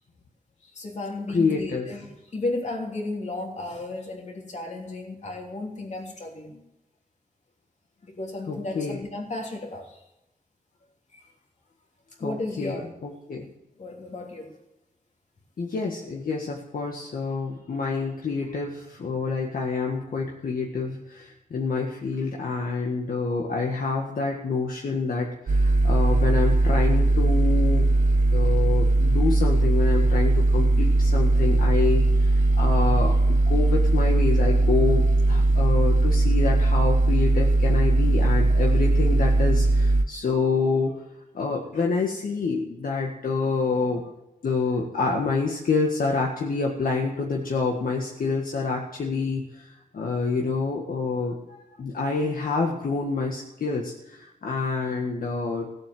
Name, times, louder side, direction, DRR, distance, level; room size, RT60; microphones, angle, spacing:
voice 1, 0.6-6.6 8.0-10.0 11.1-11.3 12.2-12.9 13.8-14.5, left 2 dB, 50° left, 1 dB, 3.0 m, -34 dB
voice 2, 1.3-1.9 8.5-9.0 12.2-13.5 15.6-27.9 28.3-40.9 41.3-44.0 44.4-55.7, left 4 dB, 65° left, 0 dB, 1.7 m, -27 dB
sound 1, 25.5-40.0, right 2 dB, 55° right, 1.1 m, -20 dB
17.0 x 8.4 x 7.7 m, 0.93 s
wide cardioid pair, 155°, 15 cm